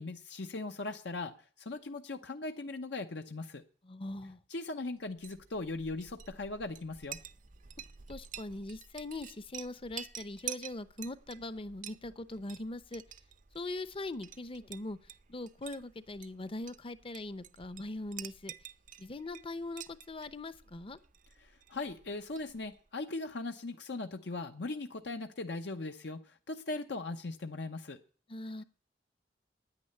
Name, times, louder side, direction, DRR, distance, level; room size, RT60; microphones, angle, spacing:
voice 1, 0.0-1.3 1.6-3.6 4.5-7.2 21.4-28.0, left 2 dB, 70° left, 6 dB, 0.9 m, -39 dB
voice 2, 3.8-4.4 8.1-13.0 13.5-15.0 15.3-18.5 19.0-21.0 28.3-28.6, left 2 dB, 30° left, 14 dB, 0.8 m, -41 dB
Chink clink, 5.1-22.9, right 10 dB, 45° right, 0.6 m, -49 dB
9.8 x 9.7 x 9.8 m, 0.43 s
head